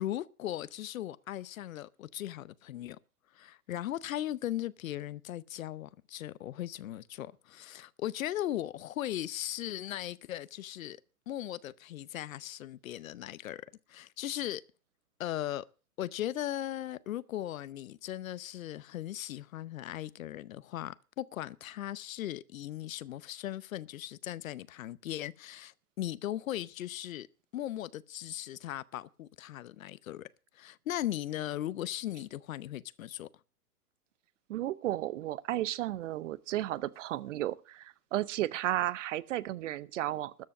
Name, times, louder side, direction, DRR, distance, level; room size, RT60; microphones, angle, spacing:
voice 1, 0.0-3.0 3.3-11.0 11.3-13.6 13.9-14.6 15.2-15.7 16.0-27.3 27.5-33.3, left 13 dB, 60° left, 0.8 m, -38 dB
voice 2, 34.5-40.4, right 14 dB, 55° right, 0.8 m, -33 dB
13.5 x 7.7 x 7.2 m
hypercardioid pair, 120°, 46 cm